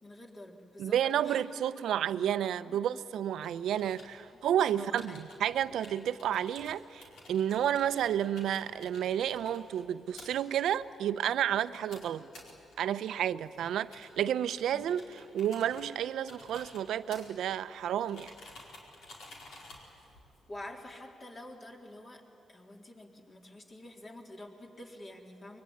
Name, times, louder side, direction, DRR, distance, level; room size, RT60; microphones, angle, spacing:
voice 1, 0.0-1.4 2.2-2.3 2.6-3.0 4.3-4.4 4.8-5.2 13.7-13.8 14.7-14.8 20.5-22.2 22.5-25.6, left 1 dB, 40° left, 3.9 m, -48 dB
voice 2, 0.8-12.3 12.8-18.3, right 10 dB, 85° right, 0.7 m, -31 dB
sound 1, 3.4-20.9, left 2 dB, 85° left, 4.8 m, -54 dB
24.5 x 22.0 x 9.9 m
cardioid pair, 75°, 0 cm